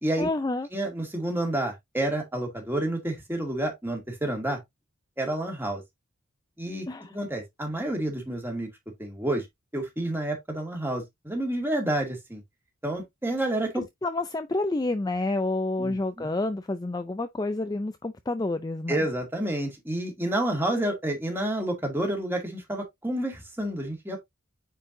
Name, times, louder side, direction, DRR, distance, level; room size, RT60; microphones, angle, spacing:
voice 1, 0.2-0.7 6.9-7.1 14.0-19.1, left 2 dB, 20° left, 0.4 m, -29 dB
voice 2, 0.7-4.6 5.2-5.8 6.6-6.9 7.1-8.7 9.0-9.5 9.7-12.4 12.8-13.8 15.8-16.3 18.9-24.2, right 1 dB, 10° right, 2.2 m, -29 dB
9.0 x 4.6 x 2.7 m
head